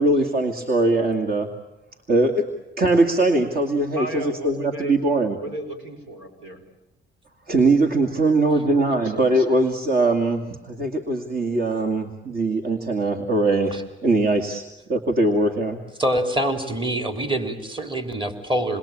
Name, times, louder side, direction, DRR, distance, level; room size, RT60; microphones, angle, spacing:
voice 1, 0.0-1.5 2.1-2.5 2.8-5.4 7.5-14.6 14.9-15.8, right 2 dB, 50° right, 4 dB, 2.3 m, -21 dB
voice 2, 3.9-5.0 5.3-6.6 8.9-9.6, right 1 dB, 90° right, 6 dB, 4.6 m, -35 dB
voice 3, 16.0-18.8, right 1 dB, 25° right, 6 dB, 3.4 m, -25 dB
28.0 x 21.5 x 8.7 m, 0.98 s
cardioid pair, 90°, 20 cm